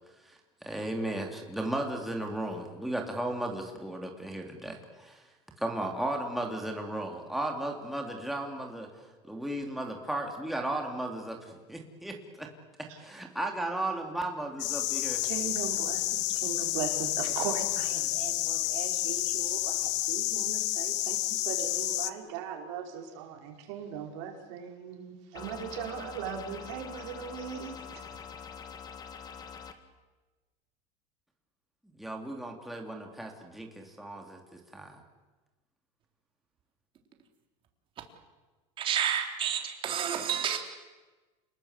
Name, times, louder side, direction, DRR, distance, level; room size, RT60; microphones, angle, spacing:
voice 1, 0.3-5.2 5.6-8.9 9.3-12.5 12.8-15.2 32.0-35.0, right 1 dB, ahead, 2.8 m, -35 dB
sound 1, 14.6-22.1, left 17 dB, 85° left, 1.1 m, -30 dB
voice 2, 15.2-28.1, right 8 dB, 75° right, 5.0 m, -39 dB
sound 2, 25.4-29.7, left 6 dB, 25° left, 2.0 m, -44 dB
voice 3, 38.8-40.6, right 9 dB, 35° right, 3.8 m, -30 dB
29.0 x 20.5 x 8.2 m
supercardioid pair, 145°, 15 cm